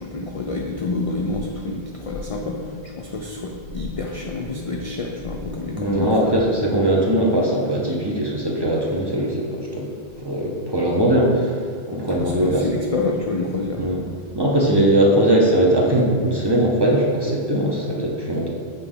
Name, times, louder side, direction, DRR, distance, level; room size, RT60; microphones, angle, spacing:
voice 1, 0.0-6.3 12.1-13.8, left 3 dB, 55° left, 0 dB, 0.4 m, -28 dB
voice 2, 5.7-9.9 10.2-12.7 13.8-14.0 14.3-18.5, right 1 dB, 30° right, -3 dB, 0.6 m, -20 dB
6.8 x 4.1 x 3.6 m, 2.3 s
omnidirectional pair, 1.1 m